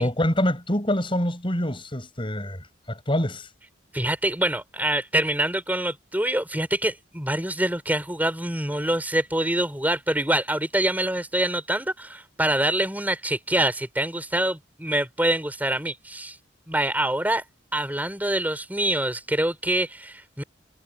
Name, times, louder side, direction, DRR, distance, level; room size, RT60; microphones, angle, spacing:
voice 1, 0.0-3.5, left 1 dB, 30° left, 7.4 m, -25 dB
voice 2, 3.9-16.4 16.7-17.4 17.7-20.4, right 1 dB, 10° right, 4.2 m, -25 dB
head